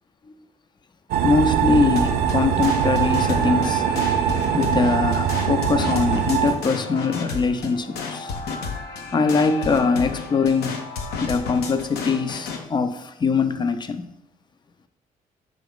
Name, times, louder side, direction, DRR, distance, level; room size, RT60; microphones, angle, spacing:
sound 1, 1.1-6.5, right 9 dB, 80° right, 0.4 m, -22 dB
voice 1, 1.2-3.8 4.5-8.3 9.1-10.8 11.2-14.1, left 4 dB, 30° left, 0.4 m, -22 dB
sound 2, 2.0-12.6, left 4 dB, 80° left, 0.6 m, -32 dB
5.0 x 2.9 x 3.6 m
supercardioid pair, 60°, 16 cm